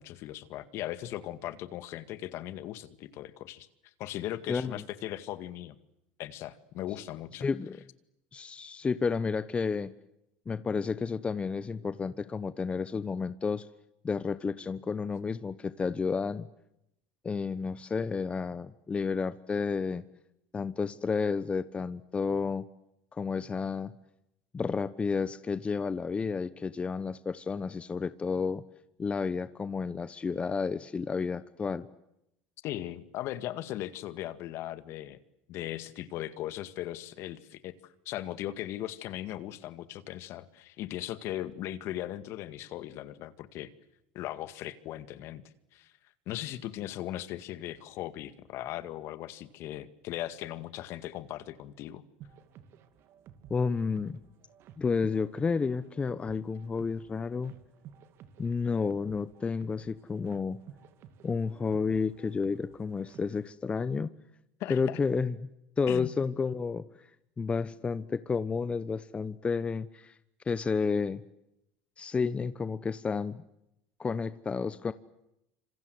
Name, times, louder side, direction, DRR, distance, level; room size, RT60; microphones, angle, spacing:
voice 1, 0.0-3.7 4.0-5.8 6.2-7.5 32.6-35.2 35.5-37.7 38.1-43.7 44.1-45.4 45.7-45.9 46.3-52.0 64.6-65.0 65.9-66.1, left 13 dB, 55° left, 13 dB, 2.0 m, -38 dB
voice 2, 7.4-7.8 8.3-9.9 10.5-13.7 14.0-16.5 17.2-20.0 20.5-22.6 23.1-23.9 24.5-28.6 29.0-31.9 53.5-54.2 54.8-57.5 58.4-60.6 61.2-64.1 64.7-65.5 65.8-66.9 67.4-70.1 70.5-71.2 72.0-73.4 74.0-74.9, left 5 dB, 20° left, 14 dB, 1.1 m, -31 dB
sound 1, 52.2-63.5, right 9 dB, 55° right, 2.5 m, -54 dB
27.0 x 26.5 x 7.9 m, 0.83 s
supercardioid pair, 95°, 5 cm